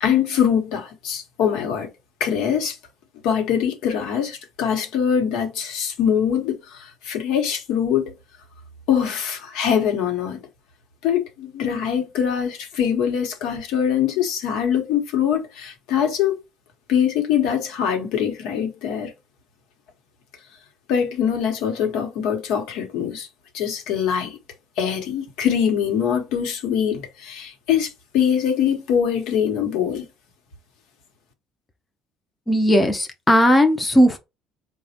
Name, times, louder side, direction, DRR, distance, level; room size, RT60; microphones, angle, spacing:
voice 1, 0.0-1.9 2.2-2.8 3.2-8.1 8.9-10.4 11.0-16.4 16.9-19.1 20.9-23.3 23.5-24.4 24.8-30.1, left 8 dB, 85° left, 0.8 m, -23 dB
voice 2, 32.5-34.2, equal, 10° left, 0.4 m, -17 dB
4.1 x 2.0 x 2.7 m
cardioid pair, 140°, 0 cm